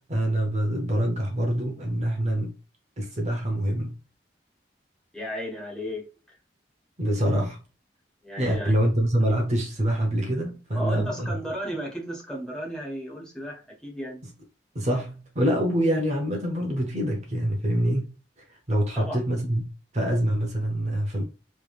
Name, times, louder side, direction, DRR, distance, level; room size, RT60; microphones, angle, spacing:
voice 1, 0.1-2.5 3.0-4.0 7.0-7.6 8.4-11.3 14.7-18.1 18.5-19.7 19.9-21.2, right 1 dB, 40° right, 0.8 m, -25 dB
voice 2, 5.1-6.4 8.2-8.8 10.7-14.2 18.9-19.2, equal, 5° left, 1.4 m, -34 dB
3.4 x 3.2 x 2.4 m
head